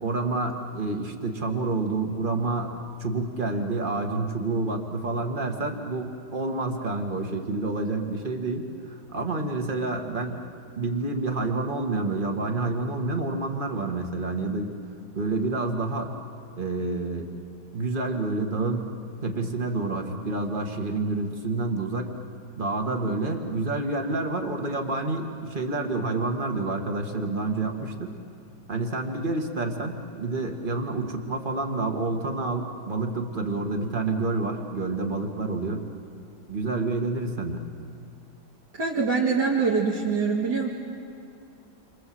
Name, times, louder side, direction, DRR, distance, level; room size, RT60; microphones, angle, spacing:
voice 1, 0.0-10.4 10.8-14.7 15.1-16.1 16.6-17.3 17.7-18.9 19.2-22.2 22.6-28.2 28.7-35.8 36.5-37.6, right 3 dB, 30° right, 3 dB, 2.1 m, -28 dB
voice 2, 38.7-40.7, right 5 dB, 70° right, -5 dB, 3.1 m, -24 dB
29.0 x 25.5 x 7.8 m, 2.4 s
omnidirectional pair, 1.8 m